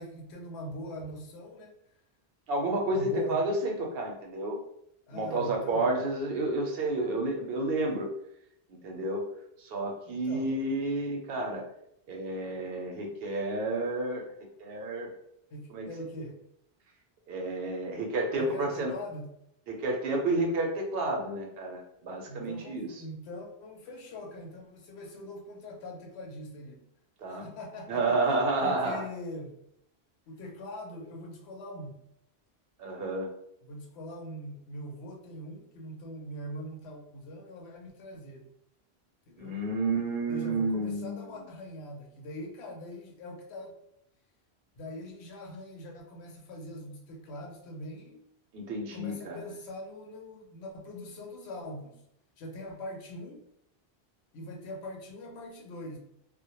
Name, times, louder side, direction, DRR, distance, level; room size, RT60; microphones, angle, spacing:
voice 1, 0.0-1.7 2.9-3.4 5.1-5.9 10.1-10.5 15.5-16.4 18.4-19.3 22.3-26.8 27.3-28.2 28.6-29.5 30.3-32.0 33.7-38.5 39.3-39.6 40.3-43.7 44.7-48.2 48.9-52.0 52.4-53.5 54.3-56.0, left 1 dB, 85° left, 1 dB, 0.9 m, -42 dB
voice 2, 2.5-4.6 5.1-8.1 8.7-9.2 9.6-11.7 12.1-14.3 14.6-15.1 15.7-15.9 17.3-18.9 19.7-23.0 27.2-27.5 27.9-29.1 32.8-33.3 39.4-41.3 48.5-49.4, right 2 dB, 70° right, 1 dB, 0.8 m, -30 dB
2.1 x 2.1 x 2.8 m, 0.76 s
omnidirectional pair, 1.1 m